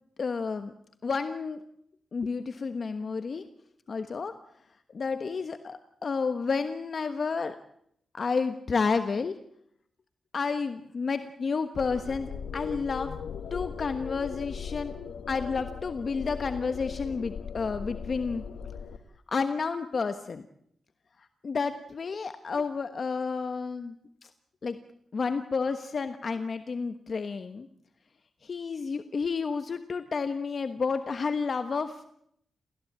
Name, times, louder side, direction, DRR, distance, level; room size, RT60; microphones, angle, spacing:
voice 1, 0.2-0.7 1.0-1.6 2.1-3.4 3.9-4.3 4.9-7.5 8.1-9.3 10.3-13.1 13.5-14.9 15.3-18.4 19.3-20.5 21.2-23.9 24.2-24.3 24.6-24.8 25.1-27.7 28.4-32.0, left 5 dB, 45° left, 9 dB, 1.3 m, -31 dB
sound 1, 11.7-19.0, left 6 dB, 75° left, 2.0 m, -38 dB
28.5 x 15.5 x 8.8 m, 0.71 s
wide cardioid pair, 140°, 0 cm